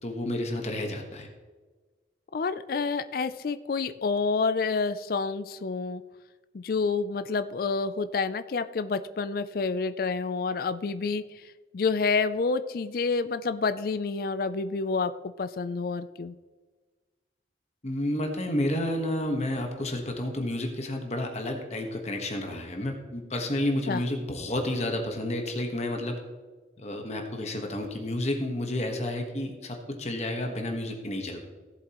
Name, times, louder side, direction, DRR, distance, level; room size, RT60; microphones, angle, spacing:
voice 1, 0.0-1.3 17.8-26.2 26.8-31.4, left 1 dB, 40° left, 3 dB, 1.3 m, -30 dB
voice 2, 2.3-6.0 6.5-11.2 11.7-15.1 15.4-16.3 23.9-24.0, left 4 dB, 55° left, 12 dB, 0.4 m, -28 dB
17.0 x 7.7 x 3.0 m, 1.3 s
head